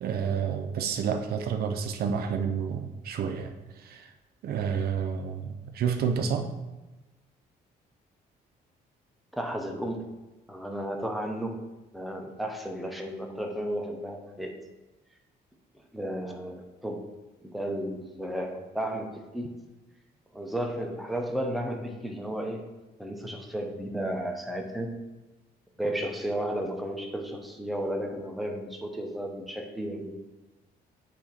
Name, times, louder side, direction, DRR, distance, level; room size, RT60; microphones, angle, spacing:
voice 1, 0.0-4.1 4.4-6.5, right 7 dB, 65° right, 6 dB, 0.6 m, -30 dB
voice 2, 9.3-10.0 10.5-11.6 11.9-14.5 15.9-17.0 17.4-19.5 20.3-22.6 23.0-25.0 25.8-30.1, right 1 dB, ahead, 2 dB, 0.8 m, -33 dB
8.2 x 2.9 x 4.2 m, 1.1 s
cardioid pair, 95°, 17 cm